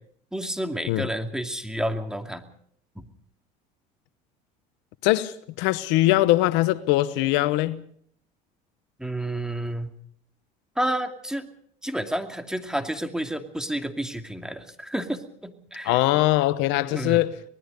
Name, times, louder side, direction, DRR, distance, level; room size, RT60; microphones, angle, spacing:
voice 1, 0.3-2.4 3.0-3.1 9.0-9.9 10.8-11.5 11.8-16.0 16.9-17.2, right 1 dB, 5° right, 2.5 m, -30 dB
voice 2, 5.0-7.8 15.8-17.4, left 17 dB, 70° left, 1.0 m, -22 dB
25.0 x 20.0 x 5.3 m
supercardioid pair, 85°, 20 cm